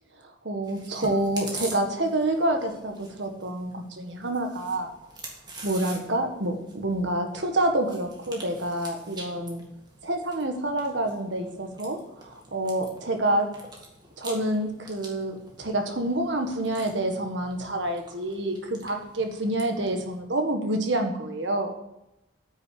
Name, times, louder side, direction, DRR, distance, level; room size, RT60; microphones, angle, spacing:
voice 1, 0.4-4.9 5.6-9.6 10.0-12.0 12.2-13.5 14.2-21.7, right 1 dB, 75° right, 4 dB, 1.7 m, -27 dB
Chewing mastication, 0.6-20.2, right 2 dB, 20° right, 1.9 m, -46 dB
9.4 x 6.5 x 8.7 m, 0.86 s
head